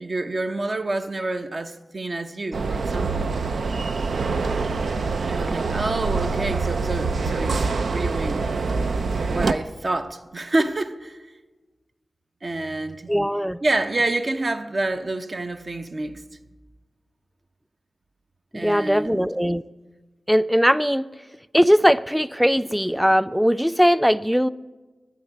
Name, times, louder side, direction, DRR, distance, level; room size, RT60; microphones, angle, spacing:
voice 1, 0.0-3.2 5.2-8.5 9.3-11.2 12.4-13.1 13.6-16.4 18.5-19.2, right 2 dB, 55° right, 1.0 m, -28 dB
sound 1, 2.5-9.5, right 4 dB, 80° right, 0.5 m, -25 dB
voice 2, 13.1-13.6 18.5-19.6 20.3-21.1 21.5-24.5, equal, ahead, 0.5 m, -19 dB
12.5 x 10.0 x 9.4 m
cardioid pair, 45°, 0 cm